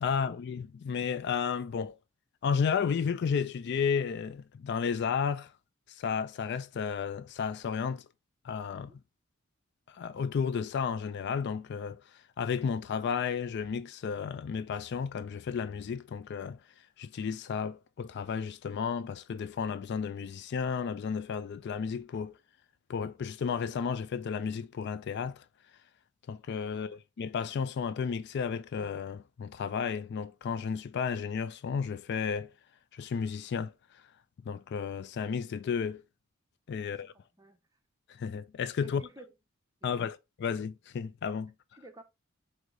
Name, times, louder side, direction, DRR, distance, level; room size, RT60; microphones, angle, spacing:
voice 1, 0.0-2.0 2.4-5.5 6.0-8.0 8.4-8.9 9.9-12.0 12.4-16.6 17.0-22.3 22.9-25.4 26.3-32.5 32.9-33.7 34.5-36.0 36.7-37.1 38.2-39.0 39.8-41.5, left 6 dB, 55° left, 0.3 m, -33 dB
voice 2, 36.8-37.6 38.8-39.3 39.8-40.1 41.7-42.0, right 1 dB, 15° right, 0.6 m, -54 dB
4.7 x 2.7 x 3.9 m
head